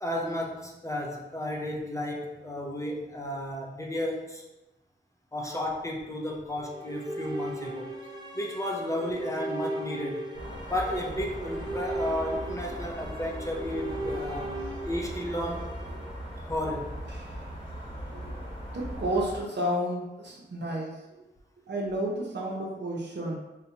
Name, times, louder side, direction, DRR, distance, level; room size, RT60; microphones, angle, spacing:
voice 1, 0.0-4.4 5.3-7.9 8.3-10.3 10.6-15.7 16.5-16.9, left 1 dB, 15° left, -1 dB, 0.6 m, -33 dB
sound 1, 6.6-16.8, right 1 dB, 25° right, 0.6 m, -38 dB
sound 2, 10.3-19.4, equal, 90° left, 1.2 m, -39 dB
voice 2, 18.7-21.0 21.7-23.4, right 1 dB, 70° right, -2 dB, 0.7 m, -31 dB
4.0 x 2.2 x 2.8 m, 1.0 s
wide cardioid pair, 75°, 19 cm